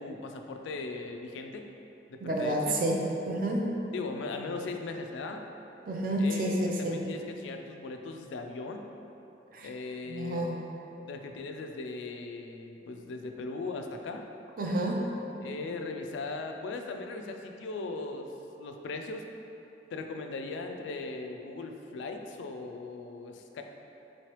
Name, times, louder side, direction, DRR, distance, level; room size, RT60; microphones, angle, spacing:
voice 1, 0.0-1.7 2.1-2.8 3.9-5.4 6.2-8.9 9.6-10.5 11.0-14.3 15.4-18.3 18.6-19.3 19.9-23.6, left 3 dB, 85° left, 5 dB, 0.3 m, -38 dB
voice 2, 2.2-3.0 3.2-3.7 5.9-6.6 6.8-7.0 9.5-9.7 10.1-10.6 14.6-15.1, right 1 dB, 50° right, 0 dB, 0.4 m, -29 dB
3.8 x 3.1 x 2.9 m, 2.9 s
head